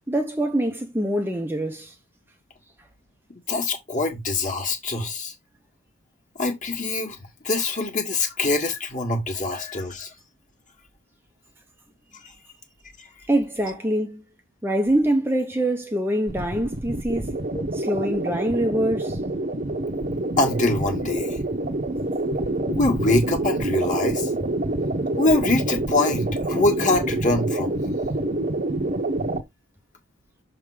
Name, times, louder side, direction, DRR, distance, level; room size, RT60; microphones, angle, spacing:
voice 1, 0.1-1.9 13.3-14.2 14.6-17.3 17.7-19.2, right 1 dB, 10° right, 0.7 m, -24 dB
voice 2, 3.5-5.3 6.4-7.2 7.4-10.1 13.0-13.1 17.5-17.6 20.4-21.4 22.7-24.3 25.2-27.8, left 2 dB, 35° left, 1.8 m, -24 dB
sound 1, 16.3-29.4, right 1 dB, 35° right, 0.9 m, -27 dB
6.8 x 3.6 x 4.9 m
head